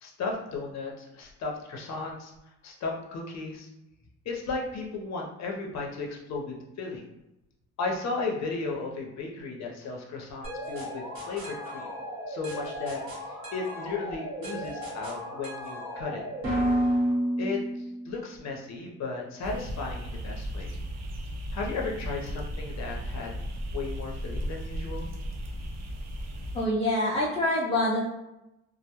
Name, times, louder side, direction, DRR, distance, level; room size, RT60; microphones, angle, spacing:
voice 1, 0.0-2.3 2.6-3.7 4.2-7.1 7.8-12.0 12.3-16.2 17.4-20.7 21.5-23.4 23.7-25.1, left 3 dB, 60° left, 0 dB, 0.6 m, -35 dB
sound 1, 10.4-18.2, equal, 45° right, 1.1 m, -32 dB
sound 2, 19.4-26.7, equal, 60° right, 0.6 m, -36 dB
voice 2, 26.5-28.1, left 1 dB, 20° left, -8 dB, 0.5 m, -26 dB
2.1 x 2.0 x 2.9 m, 0.90 s
cardioid pair, 90°, 30 cm